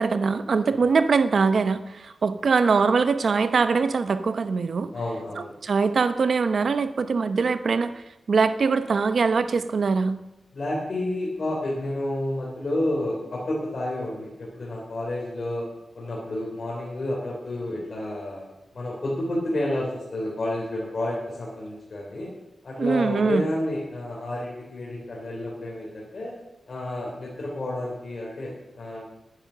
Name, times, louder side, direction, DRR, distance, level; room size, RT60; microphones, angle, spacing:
voice 1, 0.0-4.9 5.4-10.2 22.8-23.4, right 4 dB, 55° right, 11 dB, 0.7 m, -22 dB
voice 2, 4.9-5.5 10.5-15.6 15.9-18.5 18.7-22.3 22.6-26.3 26.7-29.0, left 1 dB, 45° left, -4 dB, 3.3 m, -30 dB
10.0 x 10.0 x 6.7 m, 0.99 s
wide cardioid pair, 145°, 0 cm